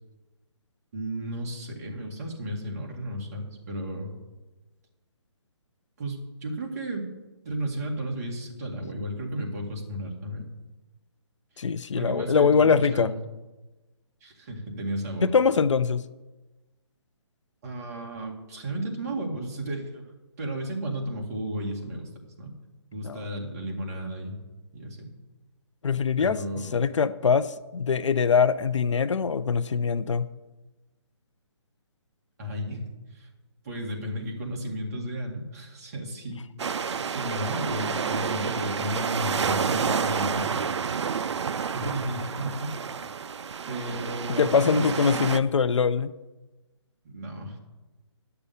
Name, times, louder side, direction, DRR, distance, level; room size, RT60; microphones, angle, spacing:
voice 1, 0.9-4.1 6.0-7.1 7.4-10.5 12.0-13.2 14.2-15.3 17.6-20.0 20.4-22.1 22.4-22.5 22.9-24.4 24.7-25.1 26.2-26.8 32.4-32.8 33.1-33.3 33.6-36.4 37.1-40.6 41.7-42.7 43.7-44.9 47.0-47.6, right 1 dB, 35° right, -1 dB, 2.2 m, -33 dB
voice 2, 11.6-13.1 15.2-16.0 23.0-23.2 25.8-26.4 26.7-30.3 44.4-46.1, left 6 dB, 85° left, 15 dB, 0.6 m, -23 dB
sound 1, 36.6-45.4, right 6 dB, 70° right, 0.5 m, -29 dB
11.0 x 6.9 x 7.1 m, 1.1 s
hypercardioid pair, 170°, 15 cm